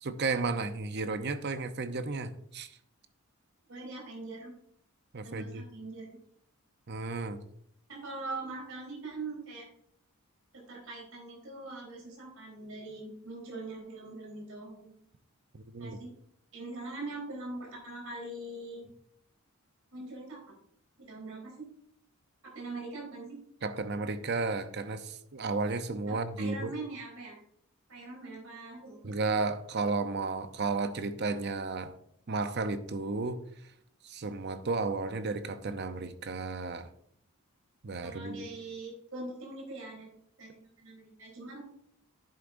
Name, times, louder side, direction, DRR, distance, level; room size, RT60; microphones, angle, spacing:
voice 1, 0.0-2.7 5.1-5.6 6.9-7.4 15.5-16.0 23.6-26.7 29.0-32.0 32.3-33.4 34.0-36.9 37.8-38.5, right 3 dB, 50° right, 11 dB, 0.6 m, -33 dB
voice 2, 3.7-4.5 5.2-6.1 7.9-9.7 10.5-14.9 15.8-16.1 16.5-18.9 19.9-20.5 21.0-21.7 22.4-23.4 26.1-27.4 27.9-29.0 38.0-41.6, right 2 dB, 70° right, -2 dB, 3.9 m, -42 dB
10.5 x 8.3 x 2.6 m, 0.69 s
head